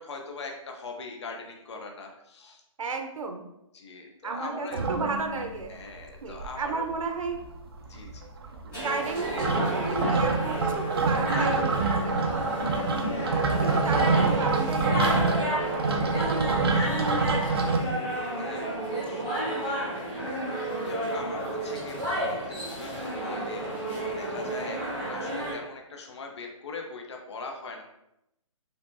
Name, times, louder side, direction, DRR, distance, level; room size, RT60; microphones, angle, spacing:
voice 1, 0.0-2.6 3.7-5.2 5.7-6.9 7.9-8.3 13.5-13.6 18.3-19.4 19.6-19.8 20.2-27.8, left 3 dB, 55° left, 2 dB, 0.6 m, -41 dB
voice 2, 2.8-3.4 4.2-5.8 6.2-7.4 8.5-13.1 13.6-15.8 16.2-17.9 19.1-19.4, right 4 dB, 75° right, 4 dB, 0.7 m, -34 dB
sound 1, 4.7-5.6 6.0-6.1 6.3-7.0 7.2-17.8, right 4 dB, 45° right, 0.4 m, -27 dB
sound 2, 8.7-25.5, right 1 dB, 5° left, 0.9 m, -31 dB
sound 3, 9.4-10.2 10.5-10.9 11.2-11.4 14.3-14.4 14.7-14.9 15.2-15.3, equal, 25° right, 1.2 m, -36 dB
4.4 x 2.8 x 2.6 m, 0.85 s
hypercardioid pair, 170°, 17 cm